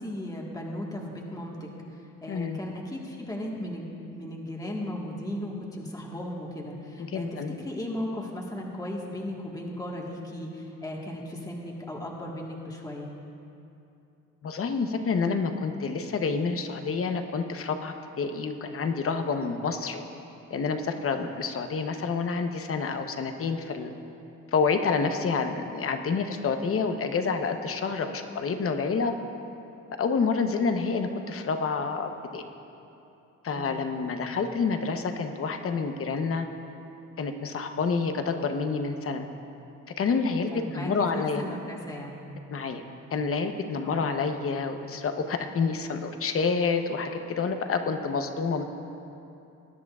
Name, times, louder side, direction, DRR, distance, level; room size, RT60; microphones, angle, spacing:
voice 1, 0.0-13.1 33.5-33.8 40.5-42.2 43.8-44.1, left 1 dB, 10° left, -2 dB, 1.5 m, -36 dB
voice 2, 2.3-2.6 7.1-7.5 14.4-20.0 20.5-23.9 24.5-29.1 30.0-32.4 33.4-36.5 37.2-39.3 40.0-41.4 42.5-42.8 43.1-48.6, left 5 dB, 45° left, 6 dB, 0.9 m, -28 dB
20.5 x 10.0 x 2.4 m, 2.8 s
cardioid pair, 90°, 30 cm